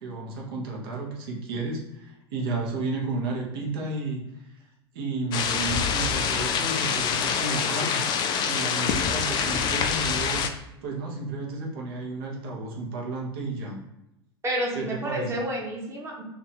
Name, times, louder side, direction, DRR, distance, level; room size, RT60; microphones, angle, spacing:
voice 1, 0.0-4.2 4.9-8.0 8.4-10.4 10.8-13.8 14.7-15.3, right 3 dB, 60° right, -2 dB, 1.0 m, -32 dB
sound 1, 5.3-10.5, left 7 dB, 30° left, 0.4 m, -26 dB
voice 2, 14.4-16.2, right 1 dB, 20° right, -2 dB, 1.0 m, -30 dB
3.0 x 2.7 x 4.1 m, 0.86 s
figure-of-eight pair, 80°, 14 cm